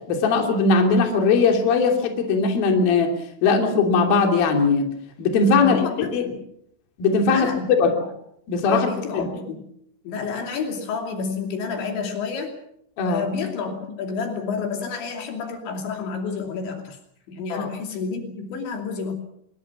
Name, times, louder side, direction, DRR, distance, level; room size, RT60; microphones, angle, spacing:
voice 1, 0.1-3.1 3.4-4.9 5.2-5.8 6.1-6.2 7.0-7.5 7.8-7.9 8.5-8.9 9.1-9.3 13.0-13.2 17.5-17.7, left 4 dB, 55° left, 3 dB, 4.5 m, -19 dB
voice 2, 5.5-6.4 7.3-7.6 8.0-8.1 8.6-9.7 10.0-12.6 13.1-17.0 17.3-19.1, left 5 dB, 75° left, 4 dB, 5.0 m, -29 dB
25.0 x 22.0 x 6.1 m, 0.73 s
omnidirectional pair, 5.3 m